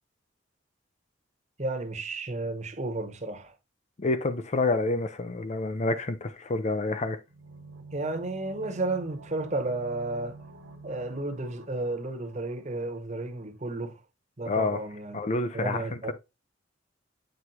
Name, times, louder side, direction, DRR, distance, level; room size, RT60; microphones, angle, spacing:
voice 1, 1.6-3.5 7.9-10.4 10.8-14.0 14.4-15.2 15.5-16.1, right 2 dB, 35° right, 1.1 m, -32 dB
voice 2, 4.0-7.2 14.5-14.8 15.1-16.1, left 3 dB, 35° left, 0.5 m, -28 dB
sound 1, 7.3-13.0 13.2-13.3, right 3 dB, 90° right, 1.4 m, -48 dB
8.0 x 4.8 x 2.8 m
head